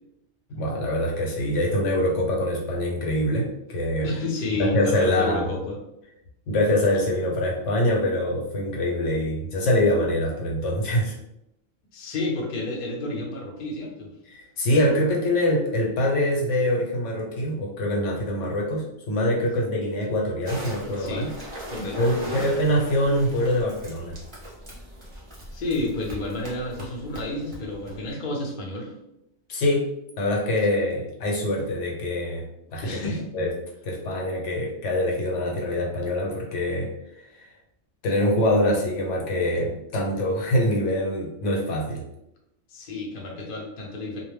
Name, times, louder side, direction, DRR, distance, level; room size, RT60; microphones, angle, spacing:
voice 1, 0.5-4.1 4.6-5.5 6.5-11.2 14.3-21.4 22.0-24.2 29.5-29.9 30.2-32.4 32.7-33.0 33.3-33.5 33.8-36.9 37.2-37.5 38.0-42.0, left 1 dB, 75° left, -1 dB, 1.0 m, -24 dB
voice 2, 4.0-5.8 11.9-14.1 21.0-21.3 21.7-22.5 25.5-28.9 32.8-33.3 42.7-44.2, left 2 dB, 50° left, -2 dB, 0.6 m, -30 dB
sound 1, 20.5-28.1, equal, 30° right, 0.7 m, -39 dB
2.4 x 2.1 x 3.2 m, 0.83 s
omnidirectional pair, 1.3 m